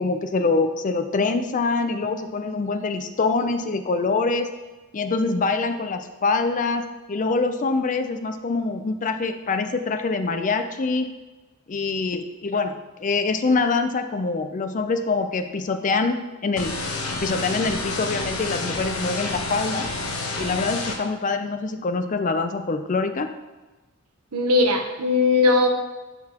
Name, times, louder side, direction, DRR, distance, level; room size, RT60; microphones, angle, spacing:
voice 1, 0.0-4.5 4.9-11.1 11.7-16.7 17.2-19.9 20.4-23.3, left 3 dB, 35° left, 8 dB, 0.4 m, -24 dB
sound 1, 16.6-21.0, left 3 dB, 65° left, 1.1 m, -29 dB
voice 2, 24.3-25.7, left 3 dB, 90° right, 5 dB, 0.9 m, -19 dB
12.0 x 4.1 x 2.9 m, 1.2 s
head